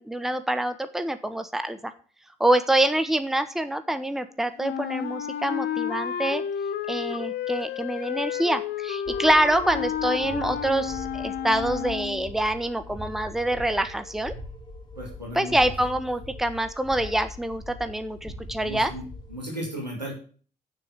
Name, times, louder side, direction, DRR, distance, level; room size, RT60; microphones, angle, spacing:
voice 1, 0.0-1.9 2.4-6.4 6.9-14.3 15.3-18.9, right 1 dB, ahead, 10 dB, 0.9 m, -26 dB
Wind instrument woodwind instrument, 4.6-12.3, left 9 dB, 55° left, 0.9 m, -31 dB
sound 1, 9.1-19.4, left 1 dB, 20° left, 3.0 m, -41 dB
voice 2, 15.0-15.6 18.6-19.0 19.3-20.1, equal, 90° right, -2 dB, 2.1 m, -35 dB
7.7 x 6.5 x 7.3 m, 0.42 s
figure-of-eight pair, 40°, 21 cm